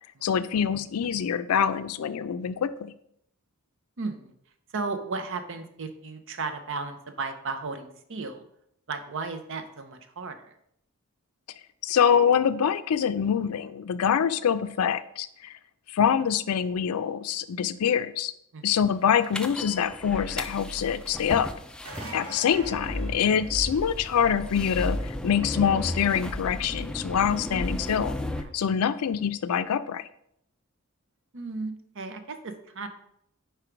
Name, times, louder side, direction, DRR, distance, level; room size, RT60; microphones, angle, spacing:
voice 1, 0.2-2.9 11.8-15.5 15.9-18.3 18.6-21.5 22.1-28.2 28.5-30.1, left 8 dB, 85° left, 13 dB, 0.4 m, -25 dB
voice 2, 4.0-4.3 4.7-8.4 8.9-10.5 18.5-18.6 21.9-22.4 28.3-28.5 31.3-32.9, right 4 dB, 60° right, 8 dB, 0.7 m, -35 dB
sound 1, 19.3-28.4, left 1 dB, 5° left, 0.3 m, -34 dB
sound 2, 21.8-23.9 29.4-29.5 31.4-31.5, right 1 dB, 85° right, 1.9 m, -42 dB
4.7 x 4.5 x 5.0 m, 0.72 s
head